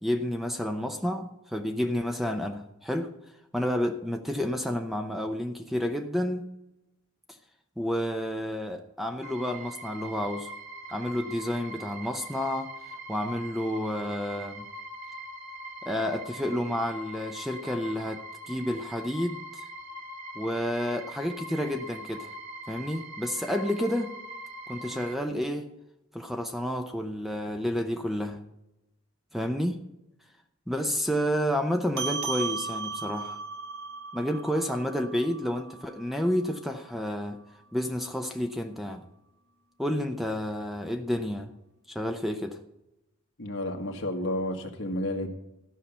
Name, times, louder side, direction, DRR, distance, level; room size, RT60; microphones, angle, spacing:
voice 1, 0.0-3.1 3.5-6.4 7.8-10.5 10.9-12.7 13.1-14.7 15.8-19.7 20.4-22.3 22.7-24.1 24.7-25.7 26.1-28.4 29.3-29.8 30.7-33.4 34.1-37.4 37.7-39.0 39.8-41.5 41.9-42.6, equal, ahead, 5 dB, 0.6 m, -30 dB
sound 1, 9.2-25.2, right 1 dB, 75° right, 1.9 m, -42 dB
sound 2, 32.0-36.8, right 4 dB, 50° right, 1.5 m, -36 dB
voice 2, 43.4-45.3, left 1 dB, 60° left, 3 dB, 1.5 m, -31 dB
14.0 x 5.8 x 6.8 m, 0.89 s
head